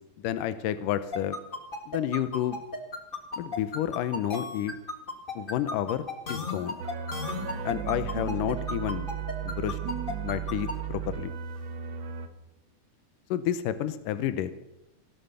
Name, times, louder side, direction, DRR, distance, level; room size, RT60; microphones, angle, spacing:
voice 1, 0.2-1.4 1.9-2.6 3.4-4.7 5.3-6.0 6.3-6.8 7.7-9.1 9.4-9.8 10.2-11.3 13.3-14.5, left 11 dB, 80° left, 13 dB, 2.5 m, -30 dB
sound 1, 1.1-10.7, left 3 dB, 30° left, 1.1 m, -34 dB
sound 2, 6.8-12.3, right 8 dB, 55° right, 1.3 m, -35 dB
17.0 x 12.0 x 6.9 m, 0.91 s
omnidirectional pair, 3.8 m